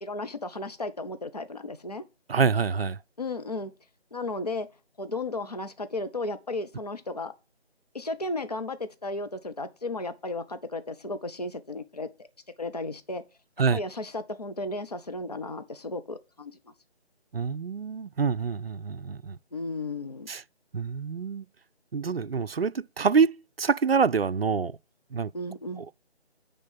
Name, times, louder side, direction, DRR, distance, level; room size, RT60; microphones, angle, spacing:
voice 1, 0.0-2.0 3.2-3.7 4.1-4.7 5.0-7.3 7.9-12.3 12.6-13.2 13.7-16.5 19.5-20.3 25.3-25.8, left 2 dB, 35° left, 0.7 m, -34 dB
voice 2, 2.3-3.0 13.6-13.8 17.3-19.4 20.3-20.4 20.7-21.5 21.9-23.3 23.6-24.8 25.1-25.3 25.8-25.9, right 5 dB, 60° right, 0.5 m, -26 dB
9.6 x 3.8 x 5.5 m
figure-of-eight pair, 160°, 33 cm